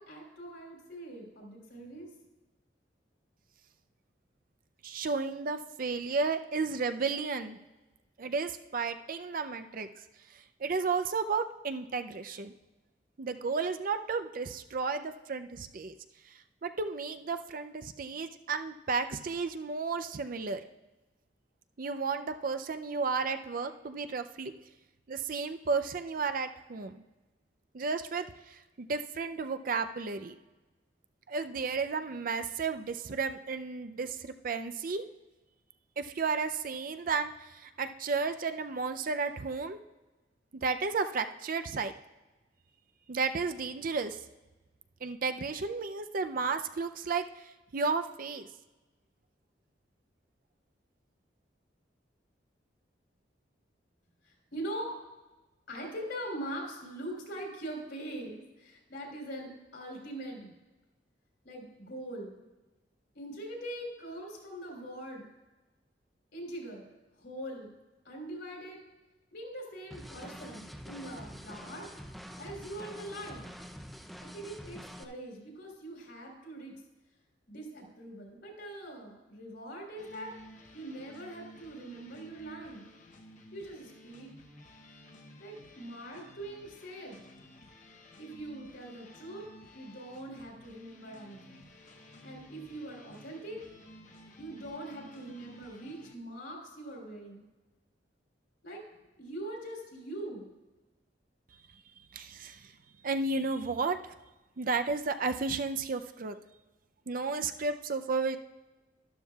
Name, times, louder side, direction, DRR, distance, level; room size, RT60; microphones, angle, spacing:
voice 1, 0.0-2.1 54.2-54.9 55.7-60.5 61.4-62.4 63.1-65.3 66.3-66.9 67.2-67.7 68.0-68.8 69.3-71.9 72.4-73.4 74.2-76.8 77.5-80.3 80.7-82.9 83.5-84.3 85.4-87.2 88.2-89.4 89.7-91.6 92.2-93.6 94.4-97.4 98.6-98.8 99.2-100.5, right 1 dB, 70° left, -1 dB, 3.4 m, -42 dB
voice 2, 4.8-7.6 8.2-9.9 10.3-12.5 13.2-15.9 16.6-20.6 21.8-24.5 25.1-27.0 27.7-30.3 31.3-35.0 36.0-39.8 40.5-41.9 43.1-44.2 45.0-48.5 102.1-102.7 103.0-104.1 104.6-106.3 107.1-108.4, right 4 dB, 50° right, 8 dB, 0.5 m, -33 dB
sound 1, 69.9-75.0, equal, ahead, 0.5 m, -46 dB
sound 2, 80.0-96.1, left 1 dB, 45° left, 0.9 m, -54 dB
12.5 x 12.0 x 2.4 m, 1.1 s
head